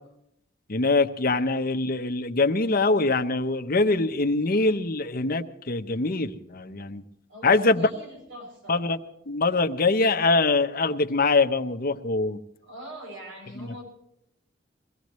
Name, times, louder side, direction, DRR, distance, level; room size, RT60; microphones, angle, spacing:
voice 1, 0.7-7.0 7.4-7.9 8.7-9.0 9.3-12.4 13.6-13.8, left 3 dB, 50° left, 6 dB, 0.9 m, -23 dB
voice 2, 7.3-8.8 12.6-13.8, equal, 85° right, 0 dB, 7.2 m, -42 dB
23.5 x 17.5 x 3.1 m, 0.78 s
head